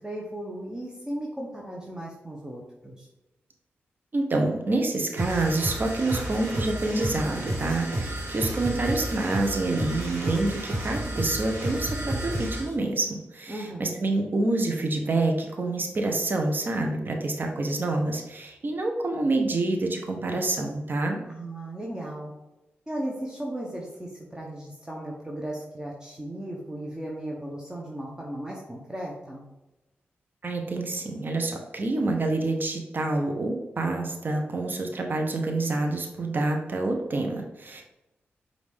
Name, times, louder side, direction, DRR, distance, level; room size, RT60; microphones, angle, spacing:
voice 1, 0.0-3.1 13.5-13.9 21.3-22.3 22.9-29.4, right 1 dB, 15° right, -3 dB, 0.9 m, -36 dB
voice 2, 4.1-21.2 30.4-37.8, right 2 dB, 50° right, 3 dB, 0.7 m, -27 dB
sound 1, 5.2-12.7, right 1 dB, 85° right, 1.4 m, -31 dB
5.1 x 2.6 x 3.5 m, 0.98 s
cardioid pair, 55°, 4 cm